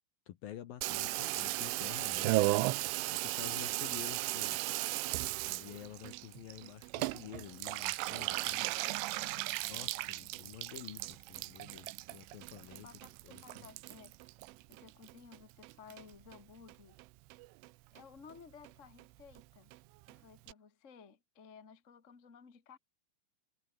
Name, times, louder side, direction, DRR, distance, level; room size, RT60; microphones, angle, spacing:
voice 1, 0.3-2.4 3.1-4.6 5.4-8.6 9.7-12.9 13.2-13.7, left 12 dB, 70° left, 2.3 m, -49 dB
Water tap faucet / Bathtub (filling or washing), 0.8-15.4 15.6-16.4 16.7-16.8 17.0-17.1 17.3-17.7 18.0-18.1 18.3-18.4 18.7-18.8 19.0-19.1 19.3-19.4 19.7-19.8 20.1-20.2 20.5-20.6, right 20 dB, 85° right, 3.2 m, -36 dB
voice 2, 8.3-9.5 12.8-14.2 14.7-17.0 17.9-19.7 20.1-22.8, left 6 dB, 85° left, 0.6 m, -56 dB
omnidirectional pair, 5.8 m